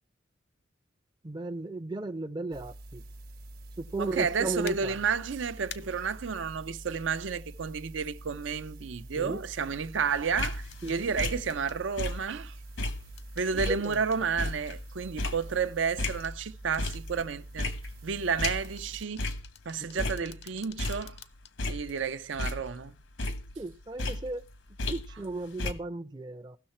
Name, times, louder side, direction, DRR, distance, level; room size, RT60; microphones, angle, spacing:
voice 1, 1.2-3.0 3.8-5.0 9.2-9.4 10.8-11.1 13.7-14.0 19.9-20.1 23.6-24.5 24.9-26.6, right 2 dB, 20° right, 0.5 m, -35 dB
sound 1, 2.5-19.0, right 1 dB, 50° right, 0.9 m, -46 dB
voice 2, 4.0-12.5 13.4-17.7 18.0-19.3 19.7-21.2 21.7-23.0, right 6 dB, 75° right, 0.6 m, -31 dB
sound 2, 4.7-4.8 5.7-5.8 7.8-7.9 10.7-11.0 11.5-11.8 13.2-13.5 13.9-14.2 16.0-16.4 16.7-17.0 18.6-21.5 22.0-22.1, left 9 dB, 60° left, 0.6 m, -48 dB
sound 3, 10.1-12.5 12.8-16.4 16.8-17.2 17.6-18.9 19.2-19.5 19.9-21.2 21.6-22.9 23.2-25.3 25.6-25.7, left 2 dB, 75° left, 1.0 m, -35 dB
16.5 x 6.5 x 4.3 m
head